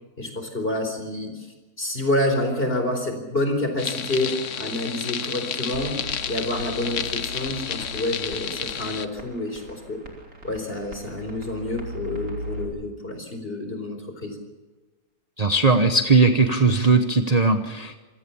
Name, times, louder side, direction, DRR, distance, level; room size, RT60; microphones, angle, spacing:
voice 1, 0.2-1.5 1.8-6.0 6.3-10.0 10.4-14.4, left 1 dB, 35° left, 5 dB, 4.5 m, -28 dB
sound 1, 3.8-9.1, left 8 dB, 55° left, 1.2 m, -31 dB
sound 2, 5.7-12.6, right 1 dB, 65° right, 3.7 m, -39 dB
voice 2, 15.4-18.0, right 3 dB, 30° right, 7 dB, 1.0 m, -19 dB
26.5 x 16.5 x 7.1 m, 1.2 s
omnidirectional pair, 1.7 m